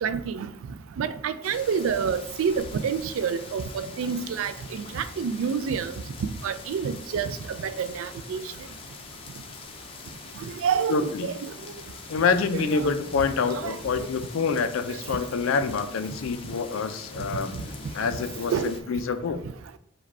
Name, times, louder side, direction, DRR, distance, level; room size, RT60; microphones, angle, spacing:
voice 1, 0.0-0.5 1.0-5.9 6.4-8.4 10.6-11.3 12.5-12.6 13.5-13.8 18.5-18.7, right 6 dB, 85° right, 0.3 m, -28 dB
sound 1, 1.4-18.8, left 4 dB, 30° left, 0.4 m, -43 dB
voice 2, 10.9-11.3 12.1-17.5 17.9-19.4, left 5 dB, 90° left, 0.4 m, -26 dB
4.9 x 2.2 x 4.1 m
head